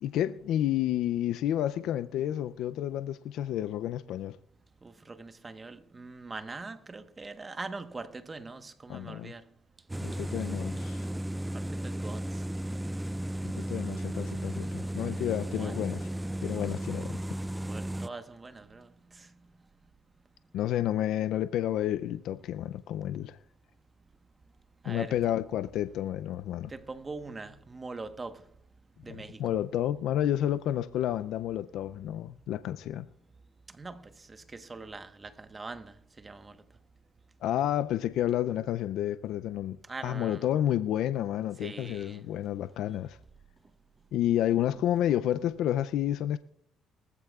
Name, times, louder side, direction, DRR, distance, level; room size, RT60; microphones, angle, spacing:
voice 1, 0.0-4.4 8.9-9.3 10.0-11.1 13.5-16.1 16.4-17.2 20.5-23.4 24.8-26.7 29.4-33.1 37.4-43.2 44.1-46.4, left 11 dB, 75° left, 0.4 m, -30 dB
voice 2, 4.8-9.4 11.5-12.2 15.6-15.8 17.7-19.3 24.8-25.2 26.7-28.4 29.0-29.4 33.7-36.6 39.9-40.5 41.6-42.2, right 3 dB, 25° right, 1.1 m, -42 dB
sound 1, 9.9-18.1, right 1 dB, 10° right, 0.4 m, -34 dB
20.0 x 14.0 x 2.4 m
supercardioid pair, 80°, 0 cm